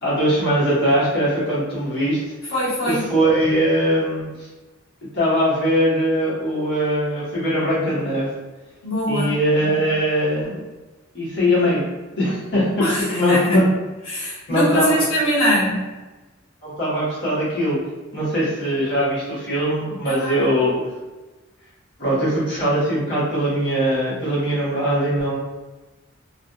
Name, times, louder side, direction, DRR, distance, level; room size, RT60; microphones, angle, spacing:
voice 1, 0.0-2.5 2.8-4.5 5.1-8.3 9.1-10.5 11.1-11.8 12.1-13.7 14.5-15.0 16.6-17.8 18.1-20.9 22.0-25.4, equal, 55° left, -9 dB, 1.0 m, -21 dB
voice 2, 2.5-3.1 8.8-9.3 12.8-13.5 14.1-15.9 20.0-20.7, equal, 85° left, -9 dB, 1.0 m, -22 dB
2.6 x 2.4 x 2.2 m, 1.1 s
head